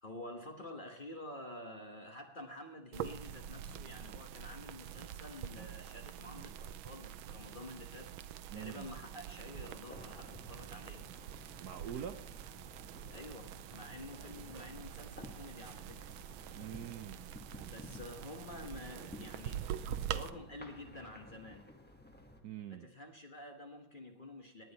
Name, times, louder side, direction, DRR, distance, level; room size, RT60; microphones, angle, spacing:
voice 1, 0.0-8.1 8.5-11.0 13.1-16.1 17.7-21.7 22.7-24.7, left 2 dB, 30° left, 3 dB, 1.2 m, -49 dB
sound 1, 2.9-20.3, right 10 dB, 85° right, 1.4 m, -45 dB
Train, 5.3-12.9, left 1 dB, 80° left, 5.7 m, -73 dB
voice 2, 8.5-8.9 11.6-12.2 16.5-17.2 22.4-22.9, right 9 dB, 65° right, 9 dB, 1.1 m, -44 dB
sound 2, 9.9-22.4, equal, 5° left, 0.9 m, -54 dB
19.5 x 9.4 x 4.1 m, 0.81 s
omnidirectional pair, 2.2 m